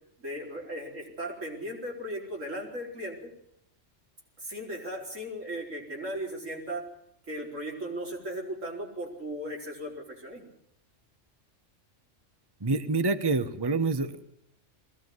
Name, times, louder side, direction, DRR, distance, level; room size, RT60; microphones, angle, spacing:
voice 1, 0.2-3.3 4.4-6.8 7.3-10.5, equal, 90° right, -1 dB, 4.8 m, -37 dB
voice 2, 12.6-14.3, right 3 dB, 20° right, 10 dB, 1.0 m, -27 dB
21.0 x 16.5 x 9.5 m, 0.77 s
omnidirectional pair, 1.3 m